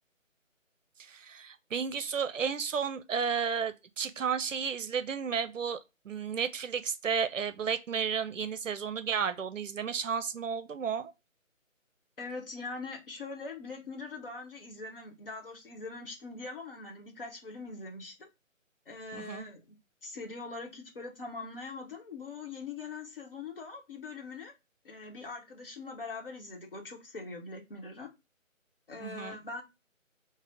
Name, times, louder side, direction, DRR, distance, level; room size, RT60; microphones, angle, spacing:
voice 1, 1.0-5.8 6.0-11.1 19.1-19.5 29.0-29.4, right 6 dB, 70° right, 0.6 m, -33 dB
voice 2, 12.2-18.3 18.9-19.8 20.0-24.5 24.8-28.1 28.9-29.6, left 3 dB, 45° left, 0.9 m, -42 dB
3.9 x 2.1 x 3.5 m
figure-of-eight pair, 165°, 40 cm